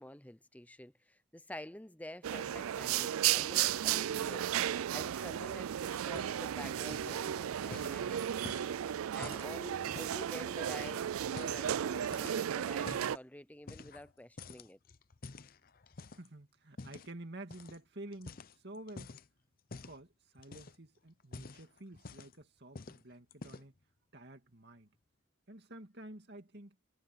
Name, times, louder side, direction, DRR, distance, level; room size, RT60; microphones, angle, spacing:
voice 1, 0.0-4.5 4.9-8.3 9.1-14.8, left 1 dB, 5° left, 0.7 m, -49 dB
School Canteen Atmosphere, 2.2-13.2, right 10 dB, 90° right, 0.4 m, -34 dB
sound 1, 6.1-6.6 6.8-7.2 7.7-10.3 10.7-11.7 12.0-13.2 13.7-14.1 14.4-16.3 16.8-17.1 17.5-17.8 18.1-19.3 19.7-20.0 20.4-20.9 21.2-22.4 22.8-23.0 23.3-23.8, left 3 dB, 45° left, 0.6 m, -49 dB
voice 2, 16.1-19.2 19.7-23.7 24.1-24.9 25.5-26.8, right 1 dB, 50° right, 2.5 m, -50 dB
head